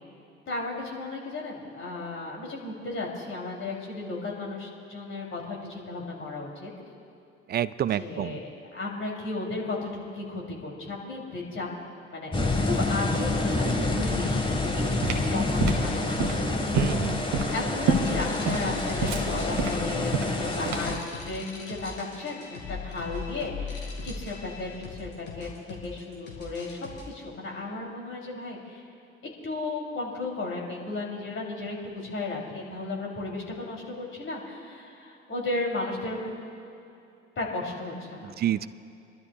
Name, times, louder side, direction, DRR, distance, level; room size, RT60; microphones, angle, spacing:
voice 1, 0.5-6.7 8.0-9.8 10.1-11.7 12.1-12.4 12.6-16.6 17.5-21.0 21.2-26.8 27.0-28.8 29.4-36.3 37.4-38.4, left 3 dB, 40° left, -2 dB, 3.1 m, -34 dB
voice 2, 7.5-8.4 16.7-17.2 38.2-38.7, right 11 dB, 30° right, 17 dB, 0.4 m, -28 dB
sound 1, 12.3-21.0, left 2 dB, 15° left, 1.6 m, -28 dB
sound 2, 14.6-21.1, right 4 dB, 60° right, 1.3 m, -29 dB
sound 3, 17.9-27.0, left 5 dB, 65° left, 3.0 m, -39 dB
28.5 x 12.0 x 2.4 m, 2.6 s
figure-of-eight pair, 55°, 33 cm